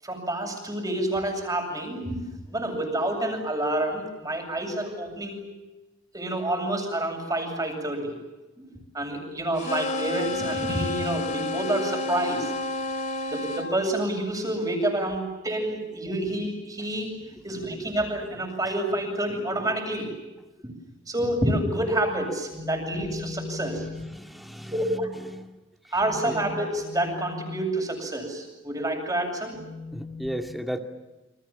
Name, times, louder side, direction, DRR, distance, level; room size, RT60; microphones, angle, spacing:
voice 1, 0.0-5.5 6.1-8.1 8.6-8.7 8.9-12.5 13.3-17.1 17.4-20.1 20.6-20.7 21.1-24.0 24.7-25.1 25.9-30.3, right 1 dB, 20° right, 3 dB, 7.8 m, -28 dB
sound 1, 9.6-13.7, left 2 dB, 40° left, 3.8 m, -30 dB
voice 2, 24.1-24.7 25.3-25.6 26.3-26.4 29.9-30.8, equal, ahead, 4 dB, 2.3 m, -34 dB
29.5 x 26.5 x 7.4 m, 1.1 s
head